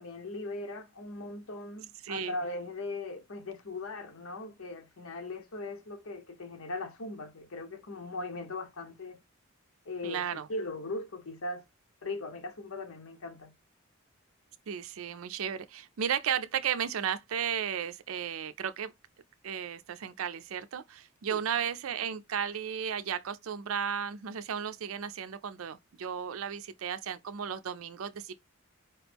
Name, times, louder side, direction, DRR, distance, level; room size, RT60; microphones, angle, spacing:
voice 1, 0.0-9.2 9.9-11.6 12.0-13.5 21.3-21.4, left 2 dB, 85° left, 0.9 m, -39 dB
voice 2, 2.0-2.4 10.0-10.5 14.7-18.9 19.4-28.3, right 8 dB, 80° right, 0.4 m, -34 dB
4.7 x 3.0 x 3.3 m
head